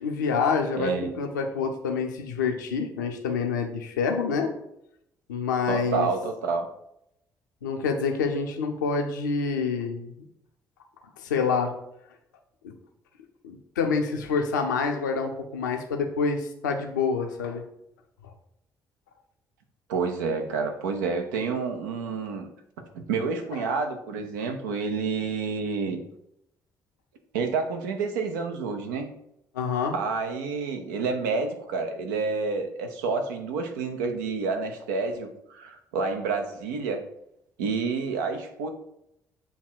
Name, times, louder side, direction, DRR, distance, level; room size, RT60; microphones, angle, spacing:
voice 1, 0.0-4.5 5.3-6.1 7.6-10.1 11.2-11.7 12.6-12.7 13.4-17.6 23.5-23.6 29.5-29.9, left 5 dB, 75° left, 4 dB, 0.6 m, -27 dB
voice 2, 0.7-1.1 5.7-6.7 19.9-22.5 23.1-26.0 27.3-29.1 29.9-37.0 37.6-38.7, right 4 dB, 70° right, 5 dB, 0.7 m, -29 dB
8.1 x 2.9 x 4.6 m, 0.79 s
figure-of-eight pair, 45°, 10 cm